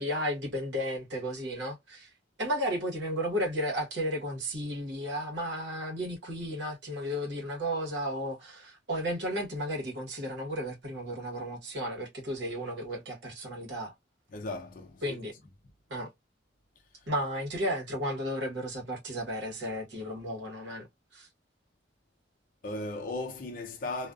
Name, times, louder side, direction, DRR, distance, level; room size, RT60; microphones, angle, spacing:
voice 1, 0.0-2.1 2.4-13.9 15.0-15.3 15.9-16.1 17.1-20.9 21.1-21.3, equal, 70° right, 1.1 m, -33 dB
voice 2, 14.3-15.2 22.6-24.1, left 2 dB, 45° left, 0.4 m, -36 dB
2.3 x 2.3 x 2.3 m
head